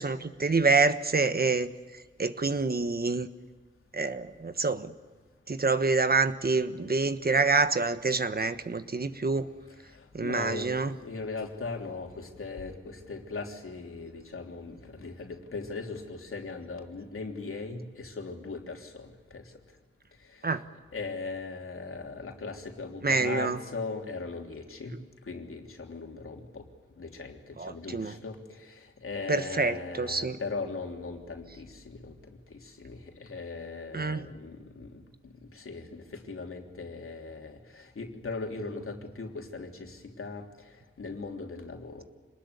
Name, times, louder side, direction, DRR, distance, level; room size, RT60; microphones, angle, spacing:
voice 1, 0.0-1.7 2.2-3.3 3.9-4.9 5.5-9.5 10.1-10.9 20.4-20.6 23.0-23.6 27.6-28.1 29.3-30.4 33.9-34.2, right 4 dB, 45° right, 10 dB, 1.4 m, -27 dB
voice 2, 9.7-10.7 11.0-19.4 20.2-20.6 20.9-25.0 25.3-26.7 27.0-40.7 41.0-42.0, left 4 dB, 90° left, 3 dB, 3.3 m, -39 dB
26.5 x 20.5 x 9.9 m, 1.3 s
wide cardioid pair, 95°, 21 cm